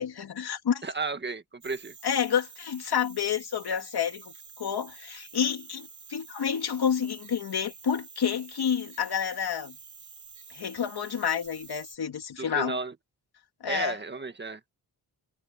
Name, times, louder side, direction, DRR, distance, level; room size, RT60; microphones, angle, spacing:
voice 1, 0.0-0.8 2.0-9.7 10.5-12.8 13.6-14.0, left 8 dB, 70° left, 2.7 m, -29 dB
voice 2, 0.8-1.9 12.4-12.9 13.7-14.6, right 3 dB, 25° right, 1.5 m, -33 dB
sound 1, 1.6-12.0, right 6 dB, 50° right, 6.9 m, -49 dB
wide cardioid pair, 135°, 40 cm